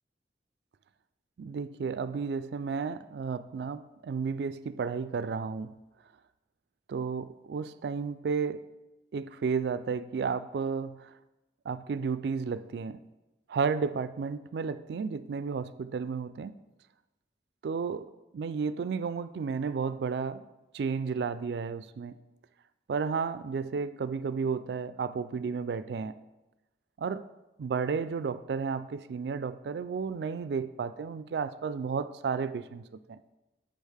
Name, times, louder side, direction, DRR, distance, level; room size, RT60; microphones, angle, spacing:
voice 1, 1.4-5.7 6.9-8.6 9.1-11.1 11.7-13.0 13.5-16.5 17.6-18.1 18.3-20.4 20.7-22.1 22.9-26.1 27.0-27.3 27.6-33.2, right 5 dB, 70° right, 14 dB, 0.3 m, -32 dB
7.9 x 6.4 x 3.4 m, 1.0 s
head